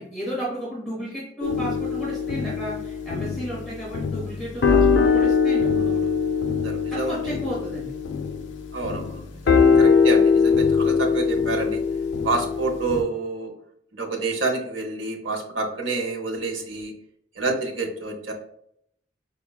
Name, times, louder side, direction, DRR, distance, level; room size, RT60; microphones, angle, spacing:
voice 1, 0.0-6.1 6.9-7.9 9.5-9.8, equal, ahead, -8 dB, 0.9 m, -33 dB
sound 1, 1.4-13.0, left 5 dB, 75° left, 0.4 m, -22 dB
voice 2, 6.6-7.2 8.7-11.8 12.2-13.5 13.9-16.9 17.4-18.3, right 3 dB, 90° right, 2 dB, 0.8 m, -28 dB
5.6 x 2.2 x 2.2 m, 0.70 s
head